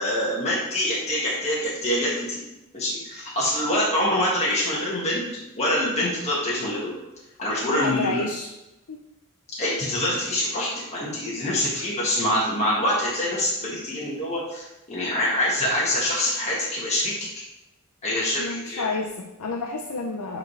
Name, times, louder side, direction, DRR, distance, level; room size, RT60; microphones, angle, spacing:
voice 1, 0.0-2.4 2.7-5.2 5.5-7.0 7.4-8.2 9.6-17.3 18.0-18.9, left 1 dB, 30° left, -7 dB, 1.7 m, -25 dB
voice 2, 7.7-8.5 8.9-9.0 18.4-20.4, left 3 dB, 80° left, 3 dB, 0.6 m, -29 dB
8.4 x 4.8 x 3.3 m, 0.96 s
head